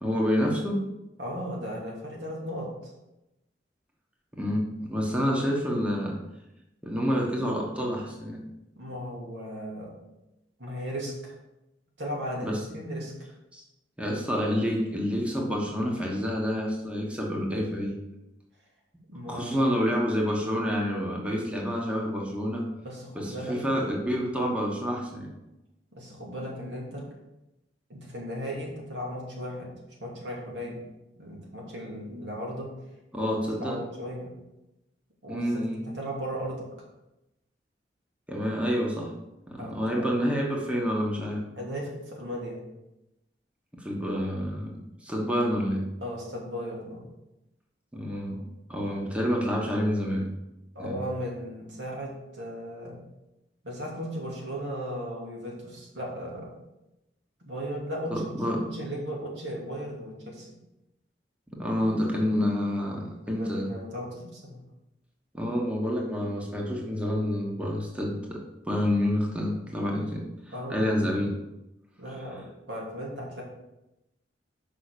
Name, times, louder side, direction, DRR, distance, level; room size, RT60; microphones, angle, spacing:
voice 1, 0.0-0.8 4.3-6.2 6.8-8.4 12.4-12.6 13.5-13.6 14.0-18.0 19.3-22.6 23.1-25.3 33.1-33.8 35.3-35.8 38.3-39.1 39.5-41.4 43.8-44.7 45.0-45.8 47.9-48.4 48.7-50.3 50.8-51.0 58.1-58.6 61.6-63.7 65.3-68.4 68.7-70.3 70.7-71.3, equal, 5° right, -1 dB, 1.3 m, -28 dB
voice 2, 1.2-2.9 8.8-9.9 10.6-11.3 12.0-13.1 19.1-19.7 22.8-23.7 25.9-27.1 27.9-29.7 30.0-30.8 31.2-32.7 33.6-34.3 35.2-36.7 39.6-40.2 41.6-42.6 46.0-47.1 50.7-53.0 53.6-56.5 57.4-60.5 63.4-64.6 70.5-71.1 72.0-73.4, equal, 90° right, -3 dB, 2.7 m, -36 dB
5.9 x 5.5 x 6.7 m, 0.94 s
head